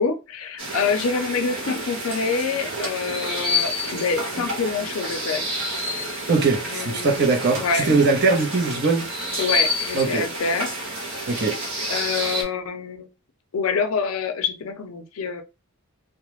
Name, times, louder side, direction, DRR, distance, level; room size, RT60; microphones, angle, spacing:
voice 1, 0.0-5.5 5.9-6.0 6.7-7.9 9.4-10.7 11.3-11.4 11.9-13.1 13.5-15.4, left 5 dB, 70° left, 0.4 m, -26 dB
sound 1, 0.6-12.4, left 1 dB, 70° right, 1.1 m, -29 dB
voice 2, 6.3-9.1 9.9-10.3 11.3-11.6, right 3 dB, 50° right, 0.7 m, -21 dB
2.3 x 2.0 x 3.0 m
head